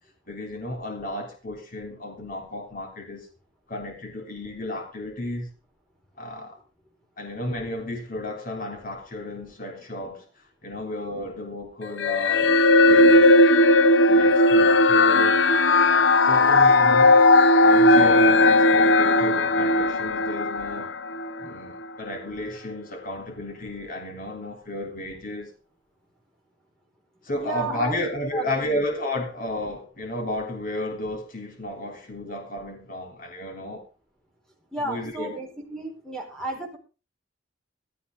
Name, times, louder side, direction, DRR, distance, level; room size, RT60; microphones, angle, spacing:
voice 1, 0.3-3.3 3.7-5.5 6.2-6.6 7.2-10.3 10.6-12.5 12.9-13.3 14.1-15.4 16.2-17.3 17.6-20.9 21.4-25.5 27.2-33.8 34.8-35.3, left 1 dB, 50° left, 3.5 m, -33 dB
sound 1, 12.0-21.5, left 2 dB, 75° left, 0.8 m, -17 dB
voice 2, 27.3-28.0 28.3-28.9 34.7-36.8, right 2 dB, 5° left, 4.9 m, -33 dB
16.0 x 13.0 x 3.7 m
head